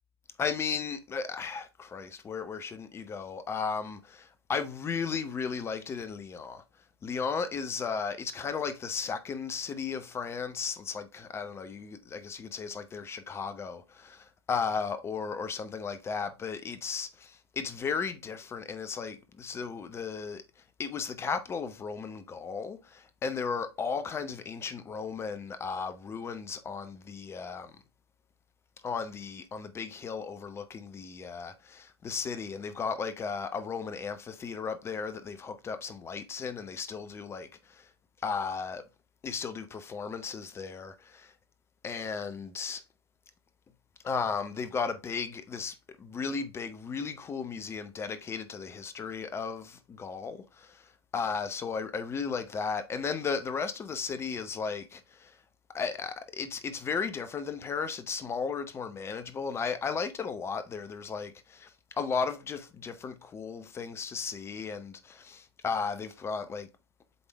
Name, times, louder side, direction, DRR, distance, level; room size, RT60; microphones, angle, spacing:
voice 1, 0.4-6.6 7.0-20.4 20.8-27.7 28.8-37.9 38.2-38.8 39.2-41.3 41.8-42.8 44.0-55.4 55.7-61.7 62.0-66.7, left 5 dB, 20° left, 0.8 m, -35 dB
7.8 x 3.6 x 3.4 m
figure-of-eight pair, 95°, 14 cm